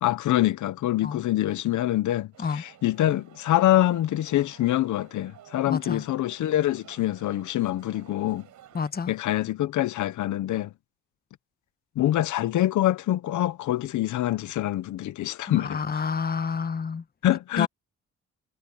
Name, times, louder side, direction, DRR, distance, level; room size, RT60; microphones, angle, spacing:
voice 1, 0.0-8.4 9.1-10.7 12.0-15.8 17.2-17.7, left 14 dB, 75° left, 1.0 m, -25 dB
sound 1, 2.3-8.9, right 11 dB, 75° right, 5.5 m, -53 dB
voice 2, 5.7-6.0 8.7-9.1 15.5-17.0 17.6-17.7, left 5 dB, 30° left, 1.2 m, -29 dB
cardioid pair, 90°, 30 cm